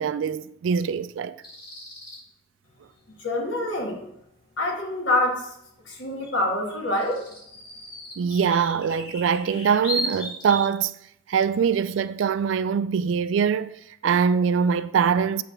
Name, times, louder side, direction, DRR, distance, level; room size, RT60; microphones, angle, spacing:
voice 1, 0.0-1.4 8.2-11.0 11.3-13.8 14.0-15.4, right 6 dB, 75° right, 0.3 m, -23 dB
sound 1, 1.4-2.2 6.2-6.3 6.7-10.7, equal, 25° left, 2.6 m, -35 dB
voice 2, 3.2-4.1 4.6-5.5 5.8-7.2, left 1 dB, 70° left, 1.7 m, -26 dB
8.7 x 3.3 x 5.8 m
head